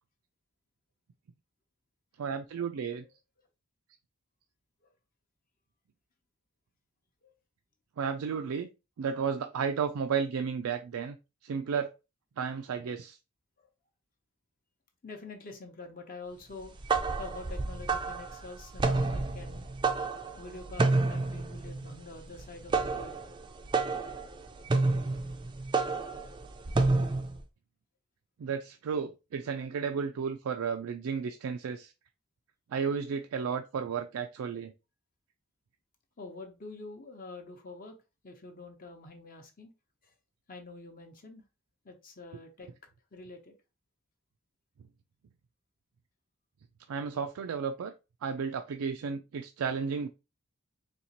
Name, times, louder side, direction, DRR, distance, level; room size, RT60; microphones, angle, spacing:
voice 1, 2.2-3.1 8.0-8.7 9.0-11.2 11.4-11.9 12.4-13.2 28.4-31.9 32.7-34.7 46.9-47.9 48.2-50.1, right 6 dB, 85° right, 0.4 m, -33 dB
voice 2, 15.0-16.7 17.2-19.7 20.4-23.2 36.2-38.0 38.2-39.7 40.0-40.1 40.5-41.4 41.8-42.7 43.1-43.5, left 3 dB, 40° left, 0.8 m, -46 dB
sound 1, 16.6-27.4, right 3 dB, 20° right, 0.4 m, -30 dB
4.2 x 2.9 x 2.8 m
head